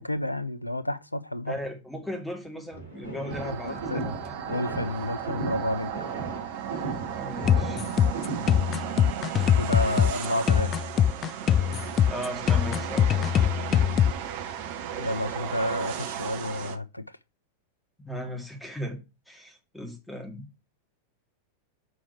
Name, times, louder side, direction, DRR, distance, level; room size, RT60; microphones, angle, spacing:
voice 1, 0.0-1.6 3.5-4.2 4.5-5.9 9.6-10.7 15.0-17.2, left 1 dB, 85° left, 0.6 m, -30 dB
voice 2, 1.5-4.3 7.1-7.8 12.1-13.3 18.1-19.0 19.3-20.5, equal, 5° left, 2.1 m, -37 dB
sound 1, 2.7-8.7, right 2 dB, 80° right, 2.6 m, -37 dB
sound 2, 3.3-16.8, right 9 dB, 50° right, 1.1 m, -35 dB
sound 3, 7.4-14.1, left 9 dB, 25° left, 0.3 m, -22 dB
6.2 x 5.7 x 4.3 m
figure-of-eight pair, 90°, 0 cm